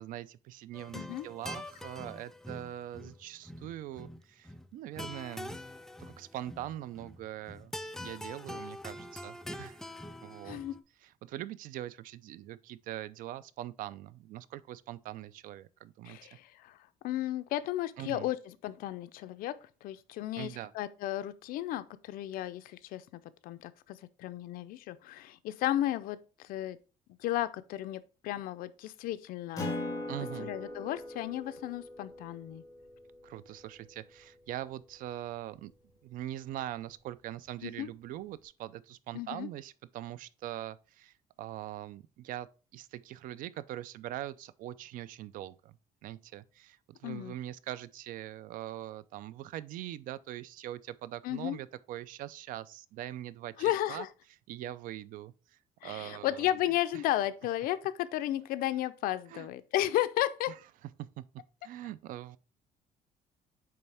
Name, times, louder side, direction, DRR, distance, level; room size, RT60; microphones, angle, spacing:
voice 1, 0.0-5.6 6.0-7.7 8.0-9.8 10.2-10.6 11.0-16.2 18.0-18.3 20.4-20.7 30.1-30.5 33.2-35.7 36.0-45.8 46.0-54.1 54.5-55.3 55.8-56.5 56.9-57.0 59.3-59.5 61.0-61.3 61.6-62.4, right 13 dB, 70° right, 0.4 m, -42 dB
sound 1, 0.7-10.8, left 1 dB, 5° left, 0.3 m, -44 dB
voice 2, 0.9-1.3 10.4-10.7 16.0-16.8 17.0-26.8 27.2-29.8 30.4-32.6 37.6-37.9 39.1-39.5 47.0-47.3 51.2-51.6 53.6-54.1 55.8-60.5, left 13 dB, 85° left, 0.5 m, -34 dB
Acoustic guitar, 29.5-34.5, left 1 dB, 25° left, 1.8 m, -41 dB
8.5 x 3.2 x 3.4 m
cardioid pair, 155°, 15 cm